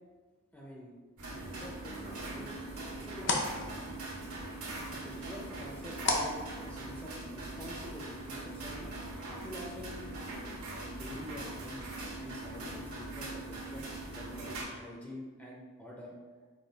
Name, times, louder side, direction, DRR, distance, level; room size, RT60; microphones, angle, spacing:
voice 1, 0.5-0.9 1.3-2.0 2.3-3.8 4.9-6.3 6.6-8.9 9.3-10.0 11.0-13.9 14.1-16.1, left 1 dB, 5° left, -3 dB, 0.5 m, -47 dB
sound 1, 1.2-14.6, right 2 dB, 85° right, 1.3 m, -41 dB
sound 2, 1.8-7.2, left 3 dB, 55° left, 0.6 m, -38 dB
5.3 x 2.4 x 3.9 m, 1.4 s
head